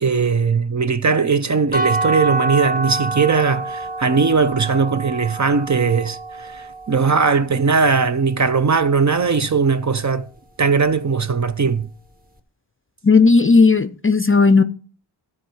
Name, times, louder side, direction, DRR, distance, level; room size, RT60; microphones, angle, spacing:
voice 1, 0.0-10.2 10.6-11.9, right 5 dB, 35° right, 0.6 m, -19 dB
sound 1, 1.7-7.5, right 2 dB, 20° right, 1.3 m, -27 dB
voice 2, 13.0-14.6, left 4 dB, 30° left, 0.5 m, -13 dB
13.0 x 4.6 x 6.2 m
wide cardioid pair, 115°, 47 cm